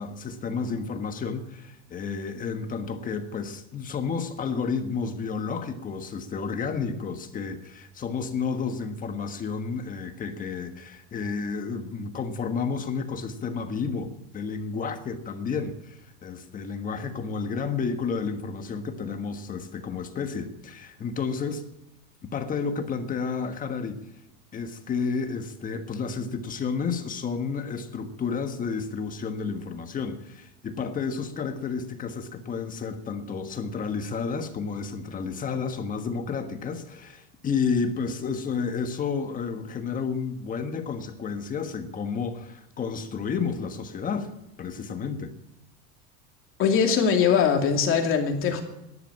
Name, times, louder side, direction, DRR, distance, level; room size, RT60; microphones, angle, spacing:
voice 1, 0.0-21.6 22.3-24.0 24.5-44.3 44.6-45.3, left 5 dB, 25° left, 1.4 m, -31 dB
voice 2, 46.6-48.6, left 6 dB, 40° left, 2.8 m, -21 dB
13.0 x 11.0 x 8.7 m
cardioid pair, 155°, 33 cm